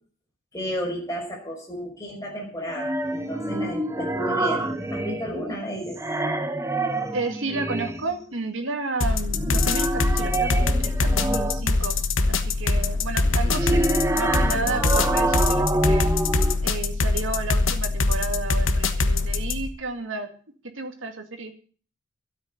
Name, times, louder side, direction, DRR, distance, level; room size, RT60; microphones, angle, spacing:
voice 1, 0.5-6.0, equal, 15° left, -2 dB, 5.6 m, -32 dB
sound 1, 2.7-5.6 5.9-8.2 9.3-11.8 13.3-16.6, right 2 dB, 15° right, 1.1 m, -27 dB
voice 2, 7.1-11.9 12.3-13.8 14.1-16.1 16.6-20.3 20.8-21.5, right 3 dB, 70° right, 5 dB, 2.3 m, -32 dB
sound 2, 9.0-19.7, left 3 dB, 70° left, 1.3 m, -23 dB
13.0 x 8.6 x 8.2 m, 0.42 s
head